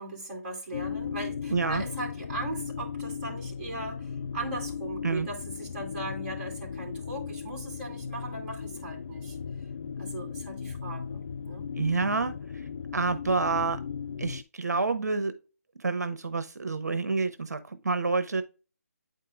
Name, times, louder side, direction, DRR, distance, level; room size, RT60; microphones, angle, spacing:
voice 1, 0.0-9.4 10.0-11.7, right 2 dB, 35° right, 2.6 m, -38 dB
sound 1, 0.7-14.4, left 6 dB, 50° left, 0.3 m, -37 dB
voice 2, 1.5-1.8 5.0-5.3 11.8-13.8 14.2-15.4 15.8-18.4, right 4 dB, 85° right, 0.7 m, -28 dB
8.9 x 4.6 x 2.4 m
figure-of-eight pair, 160°, 9 cm